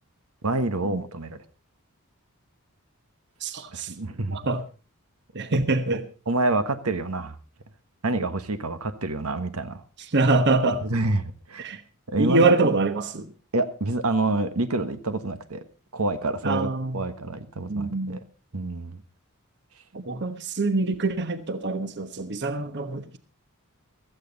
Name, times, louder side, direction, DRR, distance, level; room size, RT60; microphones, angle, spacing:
voice 1, 0.4-1.4 3.7-4.4 6.3-7.4 8.0-9.8 10.8-11.7 12.1-12.5 13.5-15.6 15.9-18.2 18.5-19.0, right 2 dB, 85° right, 10 dB, 1.4 m, -27 dB
voice 2, 3.4-3.9 4.3-4.6 5.3-6.1 10.1-10.9 11.6-11.8 12.2-13.3 16.4-17.0 17.7-18.2 19.9-23.2, right 3 dB, 55° right, 10 dB, 1.1 m, -25 dB
16.0 x 14.0 x 4.0 m, 0.35 s
head